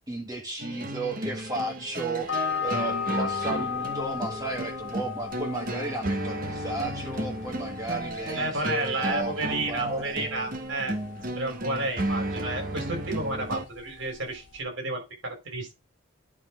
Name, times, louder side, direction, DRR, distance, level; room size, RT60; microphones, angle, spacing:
voice 1, 0.1-10.4, right 2 dB, 15° right, 1.5 m, -34 dB
sound 1, 0.6-13.7, right 1 dB, 40° right, 1.2 m, -33 dB
sound 2, 2.3-14.6, left 8 dB, 60° left, 0.9 m, -37 dB
voice 2, 8.3-11.0 11.3-15.7, right 2 dB, 70° right, 5.1 m, -31 dB
11.0 x 5.2 x 3.7 m
head